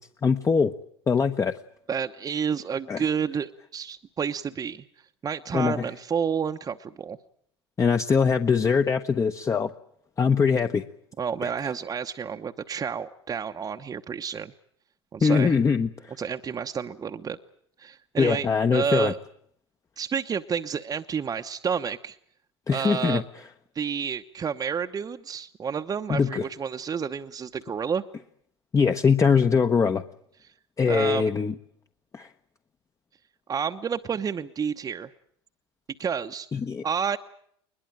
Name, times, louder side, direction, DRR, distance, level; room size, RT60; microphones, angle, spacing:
voice 1, 0.2-0.8 1.1-1.5 2.9-3.0 5.5-5.8 7.8-9.7 10.2-10.8 11.4-11.5 15.2-16.1 18.2-19.1 22.7-23.2 26.1-26.4 28.7-30.0 30.8-31.5 32.1-32.3 36.5-36.8, left 5 dB, 25° left, 8 dB, 1.1 m, -22 dB
voice 2, 1.9-4.8 5.2-7.2 11.2-14.5 15.1-15.5 16.2-17.4 17.8-19.2 20.0-22.2 22.7-23.2 23.7-28.0 30.4-30.5 30.8-31.3 33.5-35.1 36.0-36.5 36.8-37.2, right 7 dB, 25° right, 6 dB, 1.0 m, -30 dB
21.5 x 21.5 x 8.9 m, 0.69 s
hypercardioid pair, 90°, 14 cm